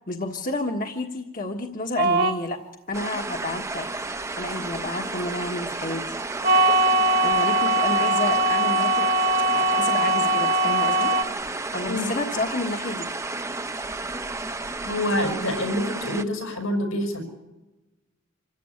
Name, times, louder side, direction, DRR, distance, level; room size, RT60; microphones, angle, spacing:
voice 1, 0.1-2.6 2.9-3.9 4.4-6.2 7.2-9.1 9.5-11.1 11.7-13.1, left 2 dB, 40° left, 2 dB, 1.4 m, -30 dB
sound 1, 2.0-2.4 6.4-11.2, right 2 dB, 50° right, 1.8 m, -21 dB
sound 2, 2.9-16.2, right 3 dB, 15° right, 0.8 m, -32 dB
voice 2, 14.8-17.2, left 1 dB, 85° left, 4 dB, 6.0 m, -26 dB
26.5 x 14.5 x 9.7 m, 1.1 s
head